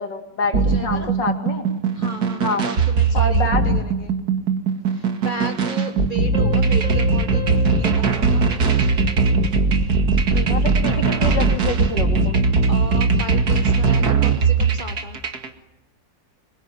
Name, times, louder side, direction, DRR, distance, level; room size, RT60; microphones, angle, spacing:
voice 1, 0.0-1.7 2.4-2.6 3.1-3.7 10.3-12.4, left 3 dB, 80° left, 5 dB, 3.6 m, -26 dB
voice 2, 0.5-1.1 1.9-3.4 3.6-4.1 4.9-8.6 12.7-15.2, right 2 dB, 30° right, 4 dB, 1.7 m, -34 dB
sound 1, 0.5-15.5, right 4 dB, 60° right, 2.5 m, -19 dB
sound 2, 6.3-9.6, left 9 dB, 5° left, 6.6 m, -36 dB
26.5 x 22.5 x 9.2 m, 0.96 s
omnidirectional pair, 1.9 m